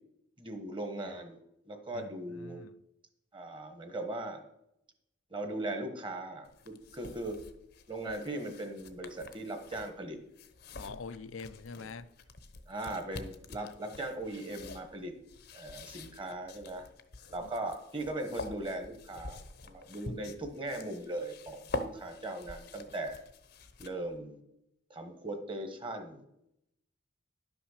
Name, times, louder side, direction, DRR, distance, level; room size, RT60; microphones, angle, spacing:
voice 1, 0.4-1.4 1.7-2.6 3.3-4.4 5.3-7.4 7.9-10.2 11.8-11.9 12.7-15.1 15.5-16.9 17.3-23.2 23.8-24.4 24.9-26.2, right 1 dB, 25° right, 1.2 m, -39 dB
voice 2, 2.4-2.7 10.7-12.1 13.6-13.7 17.4-17.5, left 4 dB, 80° left, 0.5 m, -44 dB
sound 1, 6.4-24.2, left 2 dB, 50° left, 0.8 m, -46 dB
11.0 x 6.1 x 6.4 m
head